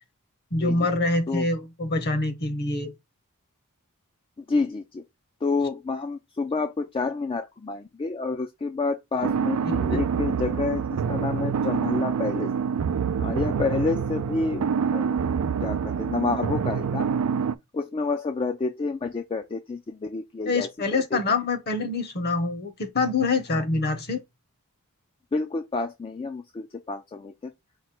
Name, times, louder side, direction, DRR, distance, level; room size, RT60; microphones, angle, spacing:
voice 1, 0.5-2.9 9.6-10.0 20.5-24.2, left 3 dB, 45° left, 1.0 m, -25 dB
voice 2, 4.4-5.0 5.4-12.5 13.2-14.7 14.9-15.2 15.6-17.1 17.7-20.7 21.1-21.2 23.5-23.6 25.3-27.5, left 3 dB, 25° left, 0.3 m, -29 dB
sound 1, 9.2-17.6, right 6 dB, 90° right, 0.4 m, -26 dB
5.0 x 2.2 x 4.2 m
head